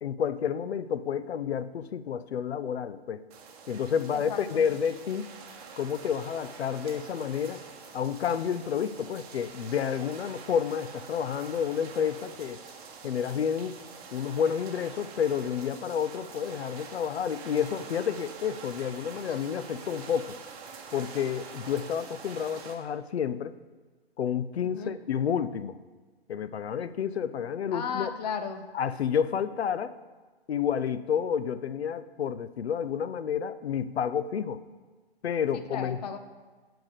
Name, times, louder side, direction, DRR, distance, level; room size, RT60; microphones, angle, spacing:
voice 1, 0.0-3.2 3.7-5.3 5.8-7.6 7.9-12.6 13.0-13.8 14.1-20.4 20.9-23.5 24.2-25.8 26.3-28.1 28.7-29.9 30.5-34.6 35.2-36.0, left 8 dB, 80° left, 14 dB, 0.6 m, -30 dB
sound 1, 3.3-22.7, right 5 dB, 35° right, 1.2 m, -46 dB
voice 2, 4.1-4.6 24.7-24.9 27.7-28.7 35.7-36.2, left 6 dB, 40° left, 8 dB, 0.7 m, -34 dB
7.5 x 4.8 x 6.6 m, 1.4 s
hypercardioid pair, 130°, 32 cm